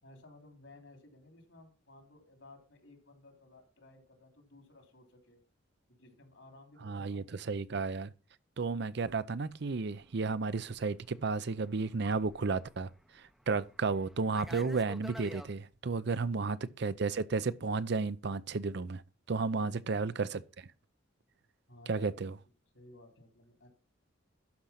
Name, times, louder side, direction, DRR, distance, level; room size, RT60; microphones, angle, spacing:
voice 1, 0.0-5.4 5.9-7.6 16.1-16.7 19.5-19.9 21.7-22.3 22.7-23.7, left 2 dB, 75° left, 3.2 m, -57 dB
voice 2, 6.8-8.1 8.6-19.0 19.3-20.7 21.9-22.4, right 4 dB, 60° right, 0.5 m, -33 dB
Fixed-wing aircraft airplane, 9.2-15.5, equal, ahead, 0.6 m, -52 dB
12.0 x 5.1 x 5.7 m
head